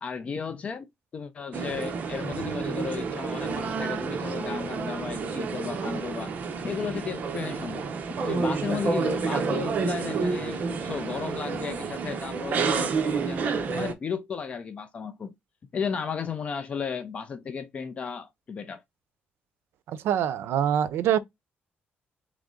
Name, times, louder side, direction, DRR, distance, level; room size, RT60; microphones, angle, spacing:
voice 1, 0.0-0.9 1.1-6.3 6.6-15.3 15.7-18.8, left 6 dB, 30° left, 0.4 m, -34 dB
sound 1, 1.5-13.9, right 5 dB, 40° right, 0.7 m, -29 dB
voice 2, 19.9-21.2, right 10 dB, 85° right, 0.5 m, -24 dB
3.8 x 3.1 x 3.6 m
cardioid pair, 180°, 4 cm